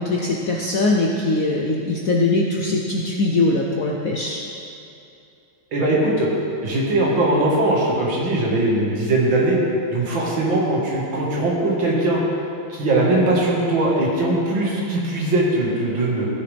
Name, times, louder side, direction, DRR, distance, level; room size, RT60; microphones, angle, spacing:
voice 1, 0.0-4.4, left 2 dB, 65° left, -1 dB, 0.8 m, -21 dB
voice 2, 5.7-6.3 6.6-9.6 9.9-12.2 12.7-16.3, right 2 dB, 70° right, -4 dB, 2.4 m, -20 dB
16.5 x 6.7 x 3.4 m, 2.7 s
omnidirectional pair, 2.2 m